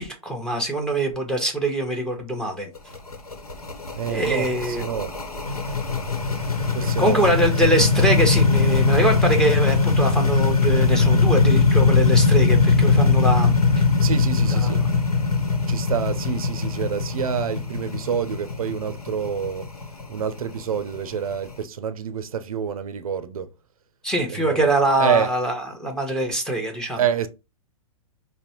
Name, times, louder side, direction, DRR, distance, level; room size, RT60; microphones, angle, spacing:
voice 1, 0.0-2.7 4.1-4.8 7.0-13.8 14.6-14.7 24.0-27.0, right 1 dB, 5° left, 0.9 m, -23 dB
sound 1, 2.8-21.5, left 4 dB, 90° left, 0.9 m, -21 dB
voice 2, 4.0-5.1 6.7-7.2 14.0-14.8 15.7-19.7 20.1-23.5 24.3-24.6 25.0-25.3 27.0-27.3, right 8 dB, 75° right, 0.5 m, -27 dB
5.1 x 2.1 x 2.8 m
figure-of-eight pair, 115°, 19 cm